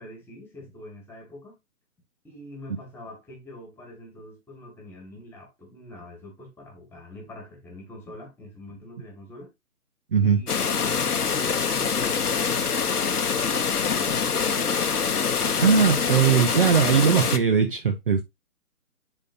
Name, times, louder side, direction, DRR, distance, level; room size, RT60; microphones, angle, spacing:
voice 1, 0.0-1.6 2.2-9.5 10.2-10.6 10.8-14.8, left 1 dB, 5° left, 1.8 m, -44 dB
sound 1, 10.5-17.4, left 6 dB, 80° left, 1.1 m, -25 dB
voice 2, 15.6-18.2, right 7 dB, 35° right, 0.8 m, -20 dB
10.5 x 4.0 x 2.7 m
figure-of-eight pair, 145°, 45 cm